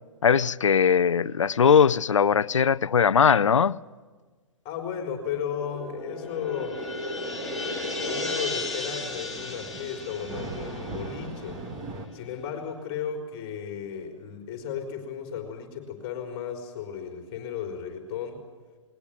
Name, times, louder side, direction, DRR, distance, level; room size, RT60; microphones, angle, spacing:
voice 1, 0.2-3.8, left 7 dB, 70° left, 0.7 m, -20 dB
voice 2, 4.6-6.8 7.9-11.7 12.1-18.4, left 7 dB, 30° left, 4.1 m, -34 dB
sound 1, 5.5-12.0, left 2 dB, ahead, 3.7 m, -34 dB
Thunder / Rain, 6.8-12.1, right 3 dB, 25° right, 2.8 m, -41 dB
20.5 x 20.5 x 9.3 m
figure-of-eight pair, 125°, 17 cm